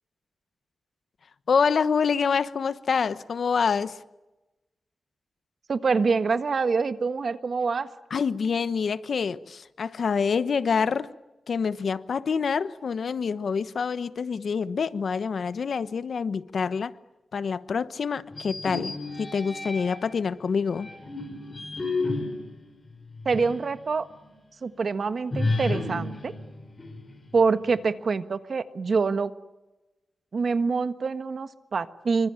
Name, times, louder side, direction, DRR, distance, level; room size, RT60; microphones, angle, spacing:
voice 1, 1.5-4.0 8.1-11.1 11.5-16.9 17.3-20.9, left 5 dB, 70° left, 1.1 m, -26 dB
voice 2, 5.7-7.9 23.2-24.1 24.6-26.3 27.3-29.3 30.3-32.3, right 4 dB, 55° right, 1.5 m, -25 dB
sound 1, 18.3-20.2 20.7-23.7 24.1-24.2 25.3-27.4, left 2 dB, 30° left, 6.1 m, -32 dB
27.0 x 24.5 x 8.9 m
wide cardioid pair, 110°, 0 cm